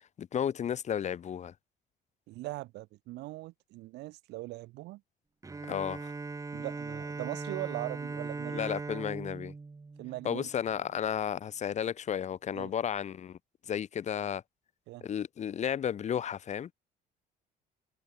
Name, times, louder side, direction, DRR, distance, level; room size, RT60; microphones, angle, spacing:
voice 1, 0.2-1.5 5.7-6.1 8.5-9.5 10.2-13.4 13.7-14.4 15.0-16.7, left 9 dB, 45° left, 1.2 m, -33 dB
voice 2, 2.3-5.0 6.5-8.6 10.0-10.5 12.5-12.7 14.9-15.1, right 19 dB, 85° right, 1.1 m, -40 dB
Bowed string instrument, 5.4-10.9, right 4 dB, 20° right, 1.4 m, -39 dB
cardioid pair, 110°, 17 cm